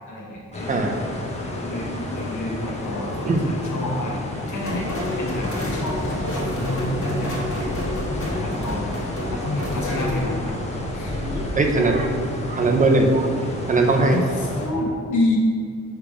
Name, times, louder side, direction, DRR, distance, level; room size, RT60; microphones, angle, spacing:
voice 1, 0.1-0.9 1.5-4.2 4.5-7.3 8.1-9.0 9.3-10.6 10.9-11.3 11.6-12.1 13.9-15.4, left 1 dB, 80° left, -3 dB, 1.3 m, -29 dB
sound 1, 0.5-14.7, left 2 dB, 20° left, 0.9 m, -30 dB
sound 2, 4.6-10.2, left 1 dB, 45° left, 1.6 m, -30 dB
voice 2, 11.2-14.2, right 2 dB, 25° right, 3 dB, 0.6 m, -21 dB
6.7 x 3.4 x 5.0 m, 2.2 s
wide cardioid pair, 145°, 30 cm